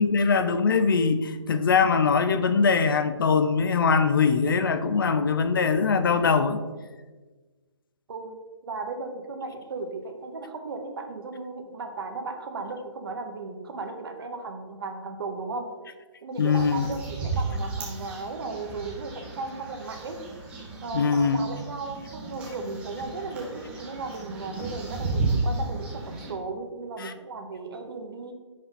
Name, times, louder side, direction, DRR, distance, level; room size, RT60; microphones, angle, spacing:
voice 1, 0.0-6.6 16.4-16.9 20.9-21.4 27.0-27.1, left 5 dB, 45° left, 10 dB, 0.4 m, -22 dB
voice 2, 8.7-15.8 16.2-20.2 20.8-28.3, right 3 dB, 50° right, 5 dB, 0.9 m, -36 dB
sound 1, 16.3-26.3, right 3 dB, 5° right, 1.3 m, -33 dB
5.1 x 5.0 x 4.1 m, 1.3 s
hypercardioid pair, 160°, 16 cm